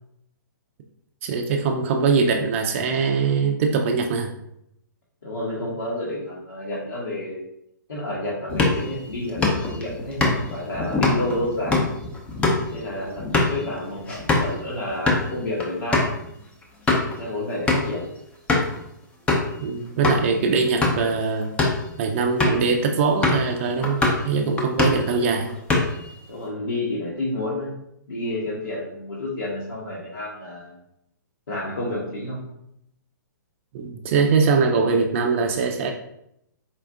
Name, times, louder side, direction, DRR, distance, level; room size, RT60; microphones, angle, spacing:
voice 1, 1.2-4.3 19.6-21.5 22.0-24.0 24.2-25.5 33.7-35.9, right 5 dB, 40° right, 4 dB, 0.4 m, -22 dB
voice 2, 5.2-7.4 7.9-11.9 12.7-13.2 13.5-16.0 17.2-18.1 26.3-27.7 28.1-30.8 31.5-32.4, left 1 dB, 75° left, -6 dB, 1.1 m, -30 dB
sound 1, 8.5-14.5 14.9-15.2 15.6-15.7 15.9-16.1 16.6-17.2 17.7-18.0 18.5-18.8 19.3-19.5 20.0-20.2 20.7-21.1 21.4-21.8 22.4-22.7 23.2-23.5 23.8-24.3 24.6-25.1 25.5-26.1, left 2 dB, 10° left, 0.6 m, -23 dB
4.3 x 2.4 x 3.5 m, 0.78 s
figure-of-eight pair, 125°, 11 cm